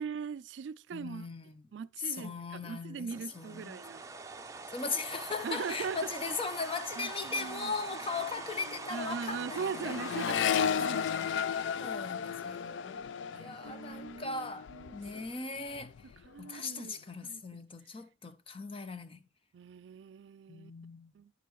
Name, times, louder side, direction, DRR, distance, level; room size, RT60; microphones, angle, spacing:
voice 1, 0.0-1.3 1.7-4.0 5.4-6.1 7.0-7.7 8.9-11.6 13.3-14.4 14.7-15.2 16.0-17.4 19.5-20.7 21.1-21.3, right 6 dB, 80° right, 0.4 m, -41 dB
voice 2, 0.9-1.5 2.0-3.1 3.3-3.8 4.7-10.0 10.9-11.3 11.8-15.9 16.4-19.2 20.5-21.1, left 4 dB, 30° left, 0.7 m, -39 dB
sound 1, 3.1-12.3, right 3 dB, 20° right, 0.6 m, -44 dB
Accelerating revving vroom, 7.3-7.5 7.8-15.3 15.6-16.3, left 8 dB, 90° left, 0.3 m, -35 dB
10.5 x 6.8 x 3.1 m
head